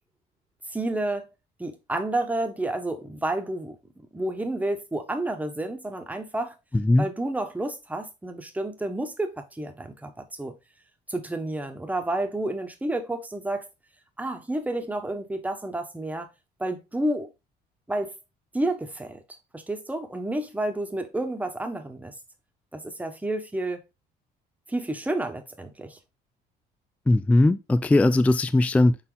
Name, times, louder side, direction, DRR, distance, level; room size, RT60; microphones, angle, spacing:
voice 1, 0.7-1.3 1.6-3.8 4.1-6.5 7.0-10.1 10.4-10.5 11.1-13.7 14.2-16.3 16.6-17.3 17.9-18.1 18.5-19.2 19.5-22.1 22.7-23.8 24.7-26.0, right 1 dB, 10° right, 1.2 m, -30 dB
voice 2, 6.7-7.1 27.1-29.0, left 2 dB, 10° left, 0.3 m, -19 dB
6.1 x 4.0 x 3.9 m
cardioid pair, 110°, 17 cm